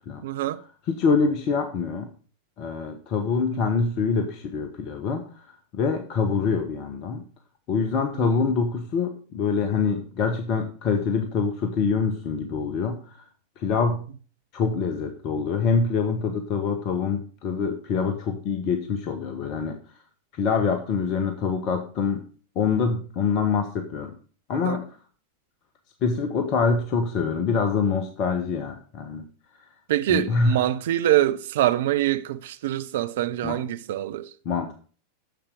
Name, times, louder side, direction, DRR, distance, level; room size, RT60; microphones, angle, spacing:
voice 1, 0.2-0.6 3.5-3.6 8.1-8.5 24.6-24.8 29.9-34.3, right 13 dB, 55° right, 0.6 m, -25 dB
voice 2, 0.9-2.1 2.6-7.2 7.7-13.2 13.6-14.0 14.5-19.7 20.3-22.2 22.5-24.1 24.5-24.8 26.0-29.2 30.1-30.6 33.4-33.6 34.4-34.7, left 5 dB, 40° left, 1.2 m, -25 dB
10.5 x 7.4 x 5.2 m
figure-of-eight pair, 90°, 0 cm